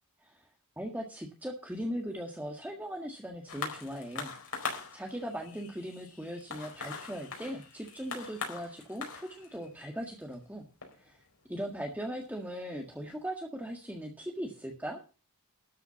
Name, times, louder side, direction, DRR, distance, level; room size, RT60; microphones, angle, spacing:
voice 1, 0.8-4.3 4.6-10.6 10.9-11.2 11.5-15.0, equal, 5° right, 2 dB, 1.6 m, -39 dB
sound 1, 3.5-12.3 13.1-13.2, left 5 dB, 75° left, 4.6 m, -42 dB
13.0 x 6.0 x 6.9 m, 0.34 s
head